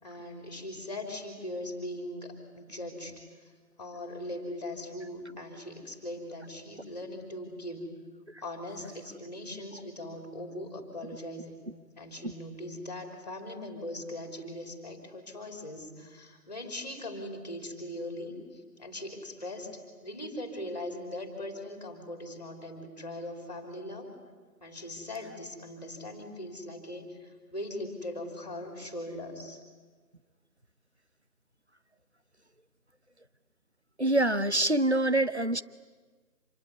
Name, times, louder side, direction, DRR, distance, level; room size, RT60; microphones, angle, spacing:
voice 1, 0.0-3.5 3.8-7.9 8.4-11.6 12.0-18.4 18.8-24.1 24.6-29.6, left 1 dB, 25° left, 5 dB, 3.3 m, -40 dB
voice 2, 34.0-35.6, right 1 dB, 40° right, 13 dB, 0.8 m, -26 dB
26.5 x 21.5 x 9.8 m, 1.4 s
figure-of-eight pair, 170°, 49 cm